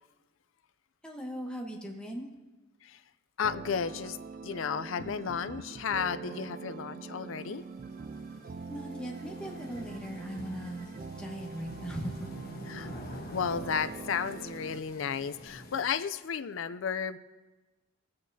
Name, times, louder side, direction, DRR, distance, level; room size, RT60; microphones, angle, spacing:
voice 1, 1.0-2.3 8.7-10.9 11.2-12.3, equal, 5° left, -1 dB, 1.2 m, -39 dB
voice 2, 3.4-4.2 4.4-7.6 12.7-12.9 13.3-17.2, left 6 dB, 65° left, 13 dB, 0.4 m, -33 dB
sound 1, 3.4-14.8, right 4 dB, 40° right, 0.3 m, -43 dB
sound 2, 6.9-15.8, left 1 dB, 45° left, 1.2 m, -49 dB
21.5 x 8.6 x 2.7 m, 1.2 s
head